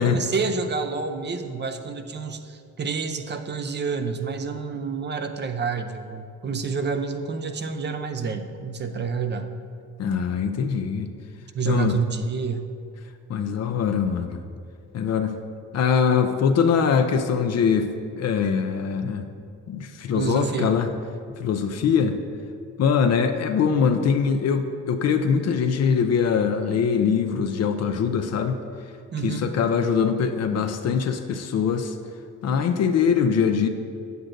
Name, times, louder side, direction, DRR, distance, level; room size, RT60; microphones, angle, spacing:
voice 1, 0.0-9.5 11.5-12.6 20.1-20.8 29.1-29.5, right 5 dB, 35° right, 8 dB, 0.6 m, -28 dB
voice 2, 10.0-11.1 11.7-12.0 13.3-14.4 14.9-15.4 15.7-19.2 19.7-20.9 21.4-22.2 22.8-28.6 29.2-32.0 32.4-33.7, left 6 dB, 60° left, 7 dB, 0.5 m, -22 dB
8.7 x 8.0 x 2.6 m, 2.4 s
cardioid pair, 90°, 30 cm